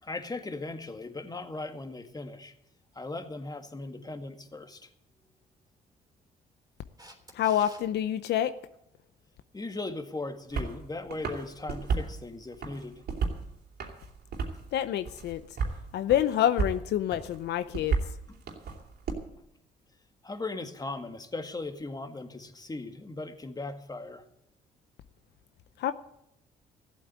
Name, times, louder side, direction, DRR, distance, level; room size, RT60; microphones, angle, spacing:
voice 1, 0.0-2.5 2.9-4.9 9.5-13.0 18.3-18.4 20.2-24.2, left 2 dB, 20° left, 7 dB, 1.9 m, -38 dB
Camera, 7.0-7.8 14.5-14.6, equal, 20° right, 3.4 m, -49 dB
voice 2, 7.3-8.5 14.7-15.4 15.9-17.9 25.8-25.9, left 11 dB, 75° left, 12 dB, 0.7 m, -27 dB
sound 1, 10.5-10.7 11.1-12.1 12.5-13.4 13.8-14.7 15.1-15.8 16.1-16.8 17.1-19.1, right 5 dB, 65° right, 3.2 m, -32 dB
14.5 x 8.5 x 8.7 m, 0.82 s
supercardioid pair, 70°, 18 cm